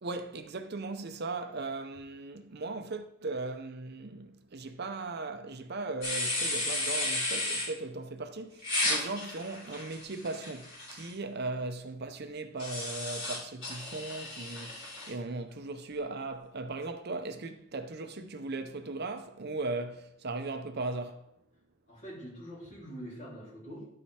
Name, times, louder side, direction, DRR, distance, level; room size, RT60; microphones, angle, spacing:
voice 1, 0.0-21.2, right 3 dB, 45° right, 0.6 m, -38 dB
sound 1, 6.0-7.7 8.6-11.1 12.6-15.1, left 2 dB, 55° left, 3.7 m, -33 dB
voice 2, 21.9-23.9, equal, 35° left, 3.5 m, -44 dB
11.5 x 5.0 x 4.3 m
head